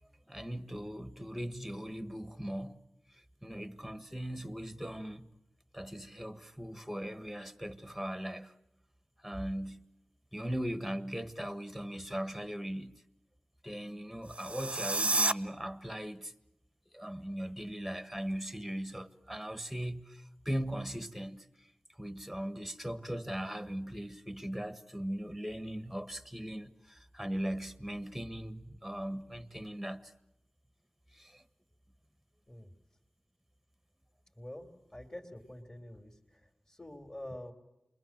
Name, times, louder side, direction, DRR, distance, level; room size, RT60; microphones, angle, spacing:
voice 1, 0.3-2.8 3.1-5.3 5.7-8.5 9.2-9.9 10.3-12.9 13.6-16.3 16.9-21.7 22.0-30.1 31.1-31.4, equal, ahead, 1.5 m, -39 dB
sound 1, 14.2-15.3, right 2 dB, 35° right, 0.8 m, -30 dB
voice 2, 34.4-37.5, left 1 dB, 20° left, 3.1 m, -47 dB
28.5 x 22.0 x 7.5 m
wide cardioid pair, 65°, 3 cm